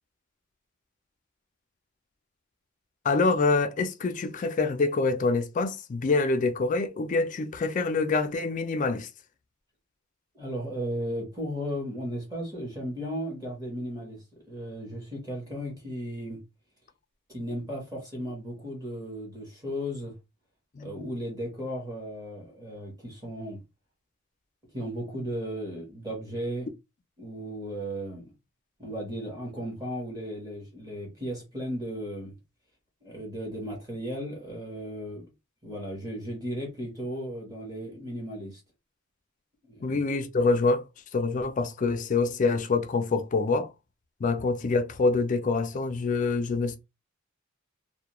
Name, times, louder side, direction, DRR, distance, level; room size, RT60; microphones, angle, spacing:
voice 1, 3.0-9.1 20.8-21.1 39.8-40.8 41.1-43.7 44.2-46.8, left 3 dB, 35° left, 0.3 m, -26 dB
voice 2, 10.3-16.4 17.3-20.2 20.8-23.6 24.7-26.7 27.2-28.3 28.8-32.3 33.0-35.3 35.6-38.6 39.6-40.0, equal, 15° right, 1.0 m, -35 dB
2.3 x 2.1 x 2.9 m
head